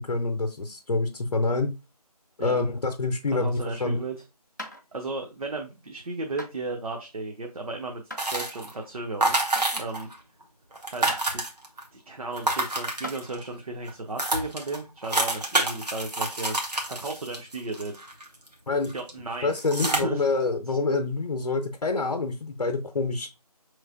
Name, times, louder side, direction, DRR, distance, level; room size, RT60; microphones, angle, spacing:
voice 1, 0.0-1.7 2.4-4.0 18.7-18.9 19.4-23.3, left 3 dB, 70° left, 4 dB, 0.6 m, -27 dB
voice 2, 3.3-4.2 4.9-9.4 9.7-10.1 10.9-11.4 11.9-18.0 18.9-20.3 20.7-20.8, right 2 dB, 65° right, 2 dB, 0.6 m, -35 dB
sound 1, 4.6-4.8 6.4-6.5 8.1-8.3 9.6-9.8 11.1-11.3 12.3-12.4 13.0-13.2 14.7-14.8, left 1 dB, 30° left, 0.4 m, -38 dB
sound 2, 8.2-8.8 9.2-10.2 10.4-10.5 10.7-11.8 12.3-13.4 13.9-14.0 14.2-18.5 18.8-19.1 19.6-20.0, right 2 dB, 90° right, 1.1 m, -28 dB
4.8 x 3.1 x 2.3 m, 0.27 s
figure-of-eight pair, 165°, 20 cm